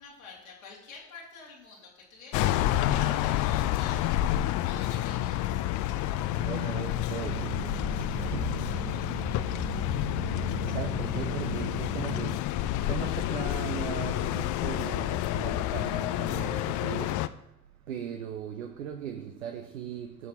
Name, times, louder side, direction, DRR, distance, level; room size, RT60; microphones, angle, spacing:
voice 1, 0.0-4.3 4.6-5.6 8.2-10.3, left 4 dB, 80° left, 2.3 m, -49 dB
sound 1, 2.3-17.3, left 13 dB, 50° left, 0.5 m, -29 dB
voice 2, 6.3-8.9 10.3-17.5 17.9-20.3, right 8 dB, 80° right, 0.7 m, -39 dB
sound 2, 7.2-12.4, right 10 dB, 35° right, 0.7 m, -39 dB
16.0 x 6.8 x 2.9 m
figure-of-eight pair, 50°, 40 cm